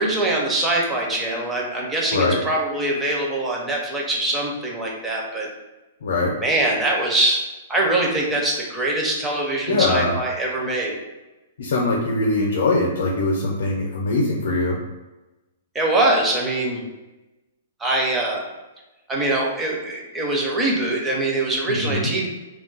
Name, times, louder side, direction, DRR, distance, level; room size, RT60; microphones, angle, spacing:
voice 1, 0.0-5.5 6.4-7.4 7.7-11.0 15.7-16.8 17.8-18.4 19.1-22.3, right 2 dB, 10° right, -2 dB, 0.4 m, -23 dB
voice 2, 6.0-6.3 9.7-10.1 11.6-14.8 21.7-22.1, left 2 dB, 65° left, 0 dB, 0.5 m, -22 dB
2.3 x 2.1 x 3.8 m, 1.1 s
hypercardioid pair, 175°, 0 cm